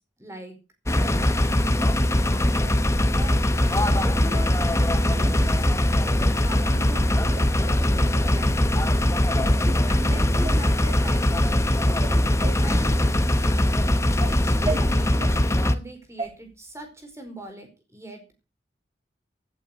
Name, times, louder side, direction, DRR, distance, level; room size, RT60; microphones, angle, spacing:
voice 1, 0.2-0.6 0.9-2.3 3.1-3.3 3.7-5.6 6.0-8.8 9.8-11.9 12.6-13.3 14.3-18.2, right 1 dB, 15° right, 5 dB, 4.7 m, -41 dB
sound 1, 0.9-15.7, left 1 dB, 15° left, 1.0 m, -21 dB
sound 2, 2.1-2.7 3.2-4.2 4.6-4.8 5.1-6.1 6.6-6.7 7.2-8.4 9.0-9.1 9.3-9.8 10.1-10.7 11.2-11.4 11.7-13.5 13.9-15.4 16.2-16.3, right 1 dB, 30° right, 1.9 m, -35 dB
17.0 x 8.3 x 6.7 m, 0.33 s
head